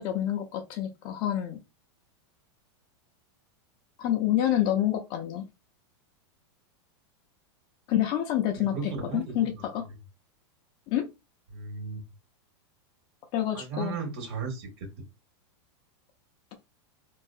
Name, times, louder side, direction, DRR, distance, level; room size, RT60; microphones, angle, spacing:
voice 1, 0.0-1.6 4.0-5.5 7.9-8.7 9.1-9.9 10.9-11.1 13.3-14.0, left 12 dB, 30° left, 0.4 m, -27 dB
voice 2, 8.5-9.8 11.5-12.0 13.5-14.9, right 4 dB, 60° right, 1.4 m, -36 dB
2.6 x 2.3 x 2.4 m
supercardioid pair, 160°, 15 cm